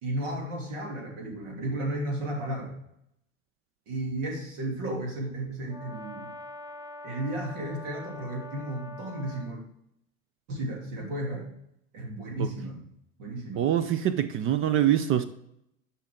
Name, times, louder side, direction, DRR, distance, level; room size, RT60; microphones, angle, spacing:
voice 1, 0.0-2.7 3.9-6.3 7.0-9.6 10.5-11.5 11.9-12.8 13.2-13.7, right 1 dB, 60° right, 3.0 m, -33 dB
Brass instrument, 5.7-9.6, left 2 dB, 10° right, 0.9 m, -43 dB
voice 2, 13.6-15.2, right 11 dB, 30° right, 0.5 m, -24 dB
10.5 x 5.9 x 3.7 m
hypercardioid pair, 85°, 41 cm